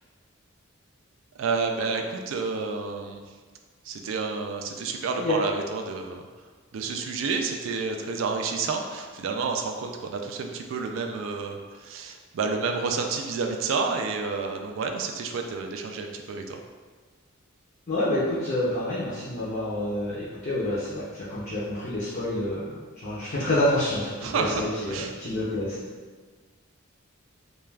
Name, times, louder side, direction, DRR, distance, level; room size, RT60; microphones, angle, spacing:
voice 1, 1.4-3.2 3.8-6.2 6.7-16.6 24.2-25.1, right 4 dB, 65° right, 4 dB, 0.3 m, -30 dB
voice 2, 17.9-22.7 23.0-25.8, left 1 dB, 40° left, -9 dB, 0.5 m, -28 dB
2.3 x 2.2 x 3.2 m, 1.5 s
head